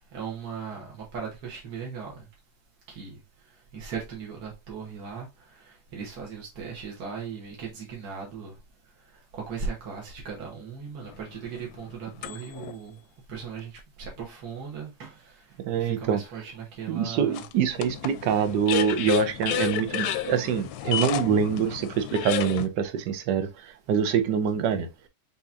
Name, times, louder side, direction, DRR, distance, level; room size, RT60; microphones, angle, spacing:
voice 1, 0.1-2.3 2.9-3.2 3.7-8.5 9.3-13.0 13.3-17.5 18.1-18.2, right 6 dB, 65° right, 1.8 m, -38 dB
sound 1, 11.0-12.7 13.4-13.5 17.3-22.7, left 12 dB, 70° left, 1.0 m, -31 dB
voice 2, 15.6-16.2 16.9-24.9, right 7 dB, 85° right, 1.4 m, -25 dB
6.4 x 2.9 x 2.5 m
omnidirectional pair, 1.8 m